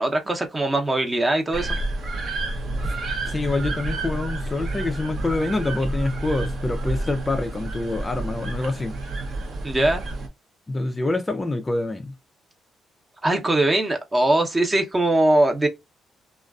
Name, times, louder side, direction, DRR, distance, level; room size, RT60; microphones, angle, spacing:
voice 1, 0.0-1.7 9.6-10.0 13.2-15.7, right 1 dB, 20° right, 0.7 m, -21 dB
sound 1, 1.5-10.3, right 2 dB, 60° right, 0.7 m, -29 dB
voice 2, 3.3-8.9 10.7-12.1, left 2 dB, 20° left, 0.3 m, -26 dB
2.4 x 2.3 x 2.3 m
cardioid pair, 90°, 0 cm